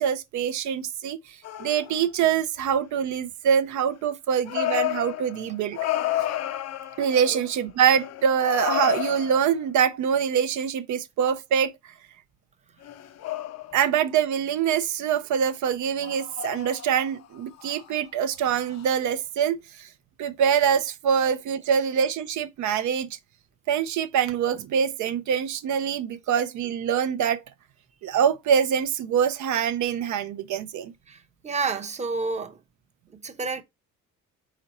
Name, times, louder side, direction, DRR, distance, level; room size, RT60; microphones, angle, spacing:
voice 1, 0.0-5.8 7.0-11.7 13.7-19.9 20.2-23.2 23.7-27.4 28.0-30.9, right 8 dB, 75° right, 0.5 m, -24 dB
sound 1, 1.4-2.1 4.5-7.6 7.9-9.6 12.8-13.9 16.0-17.2 17.6-18.0 18.7-18.9, left 12 dB, 60° left, 0.5 m, -31 dB
voice 2, 31.1-32.6 33.1-33.6, right 4 dB, 25° right, 0.7 m, -30 dB
4.1 x 3.7 x 2.9 m
cardioid pair, 90°, 30 cm